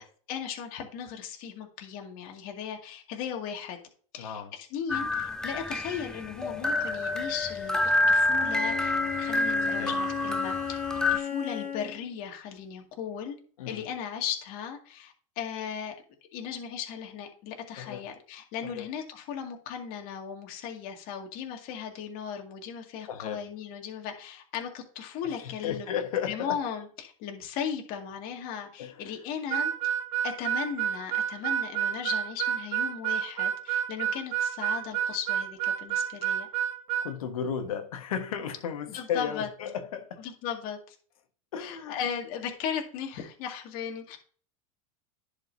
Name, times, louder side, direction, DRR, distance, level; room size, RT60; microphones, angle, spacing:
voice 1, 0.0-3.8 4.1-4.4 4.7-7.8 8.1-10.8 11.1-13.4 13.7-15.9 16.3-25.9 26.3-29.9 30.2-36.5 38.9-39.5 40.2-41.0 41.6-44.2, left 8 dB, 55° left, 2.1 m, -37 dB
voice 2, 4.2-4.5 9.7-9.9 13.6-13.8 17.8-18.0 18.6-18.9 23.1-23.4 25.2-26.6 28.8-29.0 37.0-40.3 41.5-42.1, left 8 dB, 85° left, 1.3 m, -34 dB
sound 1, 4.9-11.2, left 2 dB, 5° left, 0.6 m, -28 dB
Bowed string instrument, 8.3-12.1, left 8 dB, 40° left, 1.4 m, -34 dB
Harmonica, 29.5-37.1, right 9 dB, 75° right, 2.0 m, -29 dB
10.5 x 5.2 x 2.7 m
hypercardioid pair, 100°, 18 cm